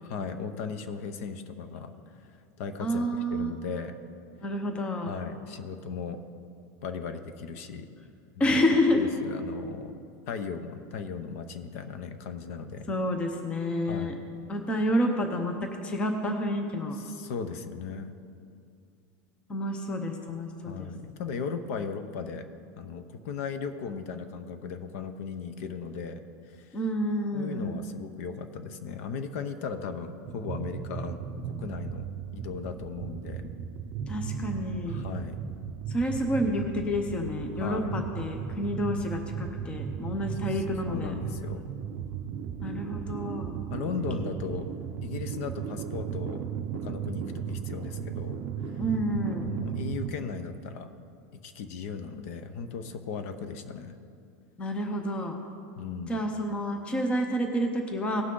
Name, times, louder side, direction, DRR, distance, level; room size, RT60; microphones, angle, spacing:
voice 1, 0.0-1.9 2.2-2.3 2.6-3.0 3.3-4.0 5.1-6.2 6.8-7.9 8.4-8.6 8.9-9.9 10.3-12.9 13.9-14.2 16.9-18.1 20.7-22.5 22.8-26.8 27.3-31.2 31.6-32.1 32.3-33.5 34.9-35.4 37.6-38.0 40.5-41.6 43.7-44.7 45.0-46.4 46.7-48.4 49.5-50.9 51.3-53.9 55.8-56.2, left 6 dB, 50° left, 9 dB, 0.8 m, -37 dB
voice 2, 2.8-3.5 4.4-5.1 8.4-9.0 12.9-14.1 14.5-17.0 19.5-20.9 26.7-27.8 34.1-35.0 35.9-41.1 42.6-43.6 48.8-49.5 54.6-55.4 56.1-58.2, equal, 10° left, 4 dB, 0.7 m, -29 dB
sound 1, 30.2-50.1, right 7 dB, 30° right, 0.6 m, -36 dB
18.0 x 6.1 x 3.8 m, 2.4 s
supercardioid pair, 175°, 9 cm